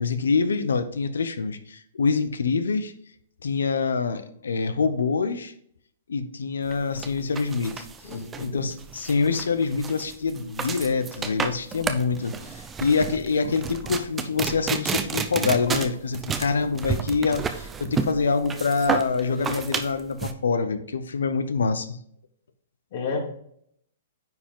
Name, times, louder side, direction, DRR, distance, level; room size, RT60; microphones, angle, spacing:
voice 1, 0.0-2.9 3.4-5.5 6.1-7.9 8.4-22.0, left 4 dB, 90° left, 11 dB, 0.9 m, -25 dB
sound 1, 6.7-20.3, right 6 dB, 15° right, 0.7 m, -31 dB
voice 2, 8.0-8.6 22.9-23.2, left 4 dB, 55° left, 1 dB, 2.7 m, -31 dB
9.5 x 4.7 x 3.8 m, 0.66 s
hypercardioid pair, 135°, 0 cm